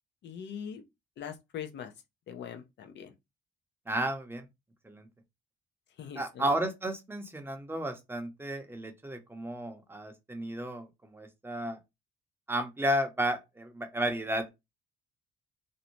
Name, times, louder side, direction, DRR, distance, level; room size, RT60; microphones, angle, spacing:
voice 1, 0.2-0.8 1.2-1.9 2.3-3.1 6.0-6.5, left 8 dB, 60° left, 0.6 m, -42 dB
voice 2, 3.9-4.5 4.8-5.1 6.2-11.8 12.5-14.5, right 1 dB, 10° right, 0.6 m, -33 dB
2.6 x 2.0 x 2.9 m
cardioid pair, 90°, 20 cm